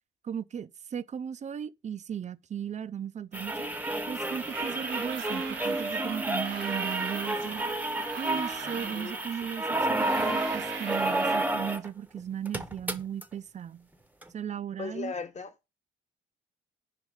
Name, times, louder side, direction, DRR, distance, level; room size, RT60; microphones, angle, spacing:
voice 1, 0.2-3.7 4.1-7.6 8.2-13.9 14.3-15.1, right 8 dB, 35° right, 0.5 m, -36 dB
sound 1, 3.3-11.9 12.2-12.3 12.5-13.2 14.2-14.3, right 2 dB, 10° right, 0.9 m, -31 dB
sound 2, 4.3-11.5, right 9 dB, 70° right, 1.0 m, -42 dB
voice 2, 8.9-9.2 14.8-15.7, left 4 dB, 35° left, 1.3 m, -37 dB
5.1 x 4.9 x 6.4 m
cardioid pair, 90°, 20 cm